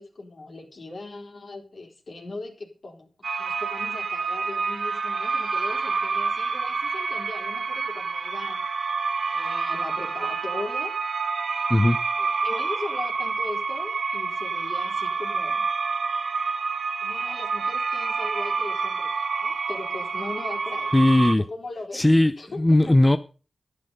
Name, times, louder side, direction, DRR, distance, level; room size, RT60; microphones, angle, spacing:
voice 1, 0.0-3.1 3.4-8.6 9.3-11.0 12.2-15.7 17.0-19.1 19.4-20.9 21.4-22.0 22.4-23.0, left 2 dB, 65° left, 3.7 m, -39 dB
sound 1, 3.2-21.4, right 4 dB, 75° right, 1.1 m, -28 dB
voice 2, 20.9-21.4 21.9-23.2, left 1 dB, 20° left, 0.6 m, -18 dB
11.0 x 9.8 x 5.4 m
cardioid pair, 65°, 0 cm